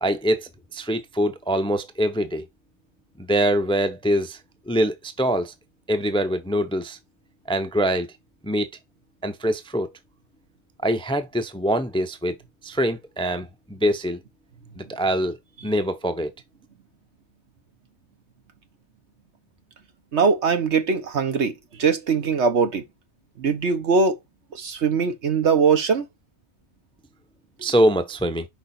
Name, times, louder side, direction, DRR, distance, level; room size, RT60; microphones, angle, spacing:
voice 1, 0.0-2.4 3.2-4.4 4.7-5.5 5.9-7.0 7.5-8.1 8.4-8.7 9.2-9.9 10.8-12.3 12.6-14.2 14.8-15.4 15.6-16.3 27.6-28.5, equal, 5° left, 0.4 m, -24 dB
voice 2, 20.1-21.5 21.8-22.8 23.4-24.2 24.5-26.1, right 5 dB, 80° right, 1.5 m, -21 dB
5.0 x 4.9 x 4.2 m
omnidirectional pair, 1.2 m